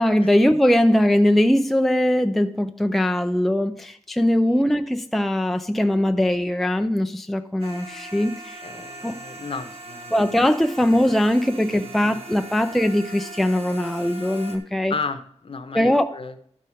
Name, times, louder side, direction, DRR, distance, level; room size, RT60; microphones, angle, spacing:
voice 1, 0.0-8.6 9.0-9.2 10.1-14.9 15.7-16.2, left 1 dB, ahead, 0.4 m, -21 dB
sound 1, 7.6-14.6, right 2 dB, 55° right, 1.5 m, -40 dB
voice 2, 8.6-10.1 11.7-12.5 14.9-16.4, left 4 dB, 50° left, 0.8 m, -34 dB
12.0 x 4.9 x 5.7 m
wide cardioid pair, 120°, 12 cm